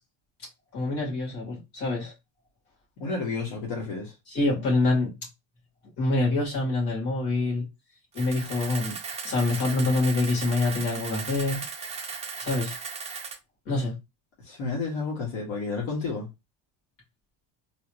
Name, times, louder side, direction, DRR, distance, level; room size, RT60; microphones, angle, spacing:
voice 1, 0.7-2.1 4.3-5.1 6.0-7.6 8.1-9.0 9.2-11.6 12.4-12.8 13.7-13.9, left 2 dB, 55° left, 2.6 m, -26 dB
voice 2, 3.0-4.1 14.4-16.3, left 4 dB, 85° left, 2.0 m, -31 dB
Camera, 8.1-13.4, right 5 dB, 15° right, 0.4 m, -37 dB
4.0 x 2.7 x 3.0 m
cardioid pair, 165°, 47 cm